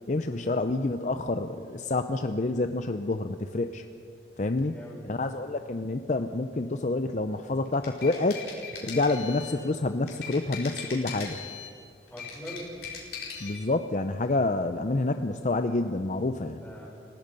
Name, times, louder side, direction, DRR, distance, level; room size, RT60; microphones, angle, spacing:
voice 1, 0.1-3.8 4.4-4.7 5.0-8.4 8.8-11.4 13.4-16.6, left 2 dB, 45° left, 8 dB, 0.6 m, -28 dB
voice 2, 4.7-5.2 12.1-12.7 16.5-16.9, equal, 10° left, -3 dB, 5.4 m, -43 dB
sound 1, 7.7-9.6 10.1-11.8 12.1-13.6, left 6 dB, 65° left, 4.9 m, -39 dB
29.5 x 17.0 x 5.3 m, 2.3 s
head